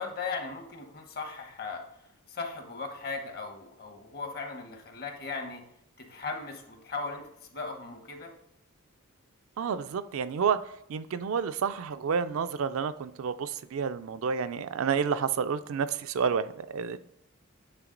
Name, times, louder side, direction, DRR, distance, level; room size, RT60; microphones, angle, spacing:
voice 1, 0.0-1.8 2.3-5.6 6.0-8.3, left 4 dB, 45° left, 5 dB, 1.0 m, -37 dB
voice 2, 9.6-10.6 10.9-17.0, right 6 dB, 65° right, 11 dB, 0.4 m, -30 dB
9.0 x 3.6 x 3.8 m, 0.77 s
head